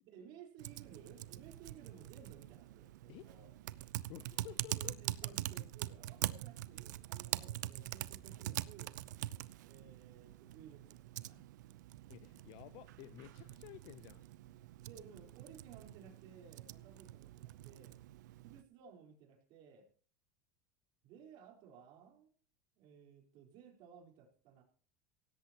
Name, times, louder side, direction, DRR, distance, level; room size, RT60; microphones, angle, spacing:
voice 1, 0.0-3.5 4.7-8.9 9.6-11.5 14.8-18.0 18.4-19.9 21.0-22.3 22.8-24.6, right 7 dB, 55° right, 2 dB, 4.2 m, -58 dB
Typing, 0.6-18.6, right 14 dB, 85° right, 0.7 m, -44 dB
voice 2, 4.1-5.0 5.2-5.3 12.1-14.2, left 16 dB, 55° left, 13 dB, 0.7 m, -53 dB
17.5 x 16.5 x 3.0 m, 0.42 s
supercardioid pair, 130°, 9 cm